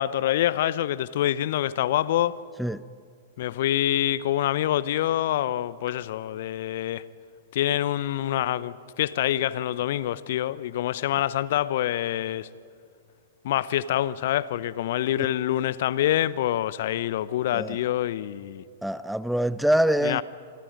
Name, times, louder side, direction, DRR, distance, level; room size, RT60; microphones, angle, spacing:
voice 1, 0.0-2.4 3.4-7.0 7.5-12.5 13.4-18.6 20.0-20.2, left 12 dB, 55° left, 0.8 m, -26 dB
voice 2, 18.8-20.2, right 1 dB, ahead, 0.6 m, -24 dB
29.0 x 26.5 x 5.2 m
figure-of-eight pair, 105°, 0 cm